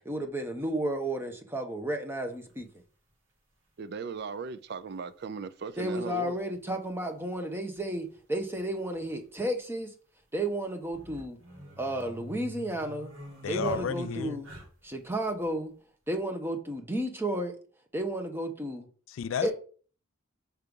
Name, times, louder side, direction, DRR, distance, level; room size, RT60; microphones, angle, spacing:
voice 1, 0.0-2.7 5.8-9.9 10.3-11.4 11.8-13.1 13.5-14.5 14.8-15.7 16.1-17.5 17.9-18.9 19.4-19.5, right 1 dB, 10° right, 1.0 m, -32 dB
Grizzly Bear growl eating, 2.4-2.5 4.0-4.1 5.5-5.6 5.8-5.9 7.8-7.9 8.1-8.2 8.9-9.4 10.8-15.0, equal, 85° right, 2.5 m, -45 dB
voice 2, 3.8-6.4, right 5 dB, 50° right, 0.4 m, -38 dB
voice 3, 13.4-14.4 19.1-19.5, left 8 dB, 75° left, 0.3 m, -32 dB
5.6 x 4.7 x 5.3 m
head